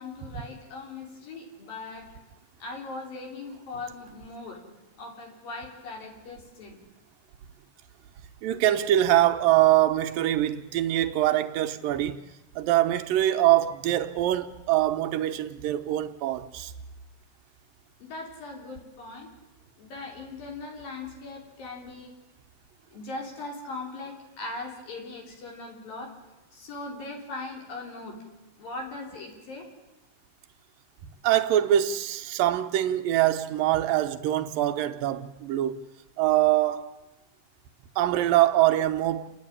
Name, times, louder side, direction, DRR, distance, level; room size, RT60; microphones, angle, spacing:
voice 1, 0.0-2.1 2.6-6.8 18.0-19.3 19.8-22.1 22.9-26.2 26.5-28.2 28.6-29.7, left 3 dB, 75° left, 5.3 m, -39 dB
voice 2, 8.4-12.2 12.6-16.7 31.2-35.8 36.2-36.9 38.0-39.3, right 13 dB, 80° right, 2.5 m, -23 dB
29.5 x 9.8 x 9.9 m
omnidirectional pair, 4.1 m